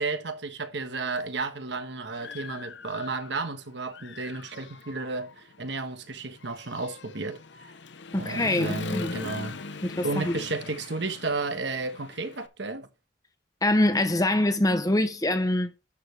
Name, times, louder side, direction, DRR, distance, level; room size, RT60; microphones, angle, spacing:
voice 1, 0.0-7.7 8.2-9.6 10.0-12.9, right 3 dB, 60° right, 1.3 m, -33 dB
Human voice / Motorcycle, 1.2-1.3 1.7-3.5 3.9-12.5, left 4 dB, 65° left, 0.8 m, -41 dB
voice 2, 8.1-9.1 9.8-10.4 13.6-15.7, left 1 dB, 20° left, 0.8 m, -24 dB
11.5 x 7.0 x 3.3 m
head